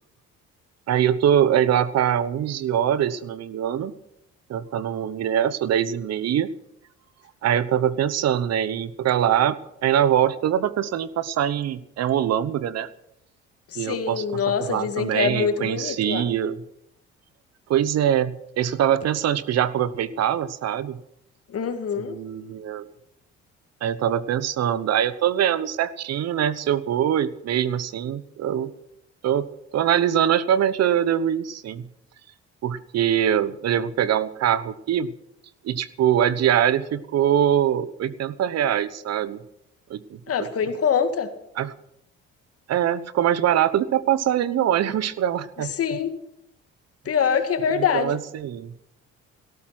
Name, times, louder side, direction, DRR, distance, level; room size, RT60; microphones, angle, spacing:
voice 1, 0.9-3.9 4.5-6.5 7.4-12.9 13.8-14.4 14.7-16.6 17.7-21.0 22.0-22.9 23.8-28.7 29.2-29.5 29.7-31.8 32.6-35.1 35.6-39.4 39.9-40.0 41.6-41.7 42.7-46.0 47.7-48.7, right 10 dB, 60° right, 16 dB, 1.1 m, -23 dB
voice 2, 13.7-16.2 21.5-22.2 40.3-41.3 45.6-46.1 47.1-48.2, left 7 dB, 55° left, 8 dB, 2.3 m, -24 dB
17.0 x 13.5 x 6.1 m, 0.78 s
supercardioid pair, 80°, 29 cm